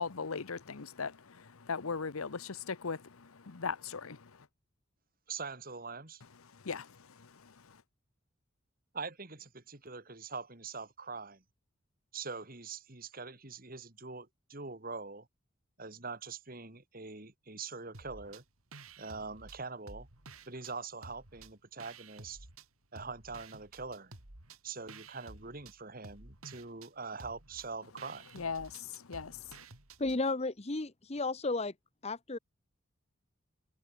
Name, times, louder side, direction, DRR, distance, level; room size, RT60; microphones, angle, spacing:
voice 1, 0.0-4.5 6.5-7.8 28.3-29.6, left 5 dB, 85° left, 0.9 m, -39 dB
voice 2, 5.3-6.2 8.9-11.4 12.1-15.3 15.8-18.4 19.0-20.1 20.5-22.5 22.9-24.1 24.6-28.2, right 4 dB, 45° right, 2.8 m, -43 dB
sound 1, 17.9-18.4 18.7-20.7 21.0-22.7 23.0-30.2, right 3 dB, 85° right, 3.8 m, -53 dB
voice 3, 30.0-31.7 32.0-32.4, left 3 dB, 30° left, 0.9 m, -33 dB
head